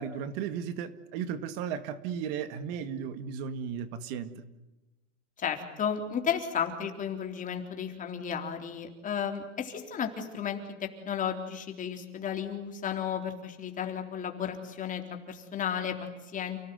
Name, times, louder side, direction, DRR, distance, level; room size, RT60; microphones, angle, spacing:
voice 1, 0.0-4.3, right 7 dB, 50° right, 11 dB, 2.1 m, -35 dB
voice 2, 5.4-16.0 16.3-16.6, left 8 dB, 20° left, 4 dB, 3.7 m, -33 dB
30.0 x 18.5 x 9.4 m, 1.0 s
supercardioid pair, 160°, 37 cm